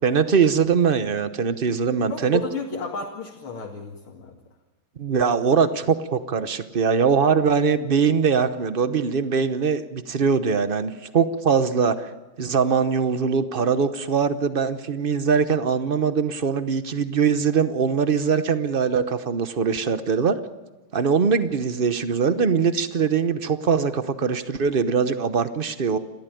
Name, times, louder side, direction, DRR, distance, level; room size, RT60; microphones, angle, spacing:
voice 1, 0.0-2.4 5.0-12.1 12.4-20.4 20.9-26.0, right 6 dB, 70° right, 11 dB, 0.5 m, -22 dB
voice 2, 2.1-4.4, left 4 dB, 75° left, 0 dB, 2.9 m, -32 dB
29.5 x 13.5 x 9.1 m, 1.2 s
omnidirectional pair, 2.4 m